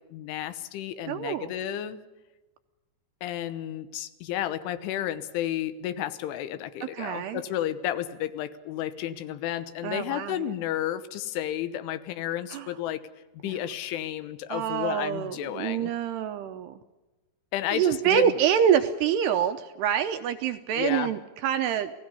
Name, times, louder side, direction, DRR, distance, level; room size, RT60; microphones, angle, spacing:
voice 1, 0.1-2.0 3.2-13.0 13.4-15.9 17.5-18.4 20.8-21.1, left 11 dB, 85° left, 12 dB, 3.5 m, -32 dB
voice 2, 1.1-1.5 6.9-7.4 9.8-10.4 12.5-12.7 13.4-13.5 14.5-16.8 17.7-21.9, right 9 dB, 80° right, 8 dB, 2.5 m, -26 dB
29.0 x 19.0 x 5.5 m, 1.1 s
omnidirectional pair, 5.5 m